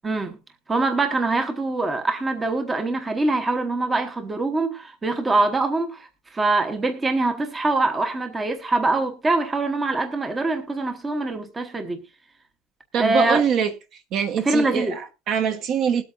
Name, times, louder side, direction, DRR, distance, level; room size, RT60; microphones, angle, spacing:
voice 1, 0.0-0.4 0.7-6.1 6.3-12.0 13.0-13.4 14.4-15.0, right 2 dB, 15° right, 1.0 m, -23 dB
voice 2, 12.9-13.7 14.1-16.0, right 7 dB, 40° right, 1.2 m, -23 dB
20.5 x 8.5 x 2.5 m
cardioid pair, 170°, 0 cm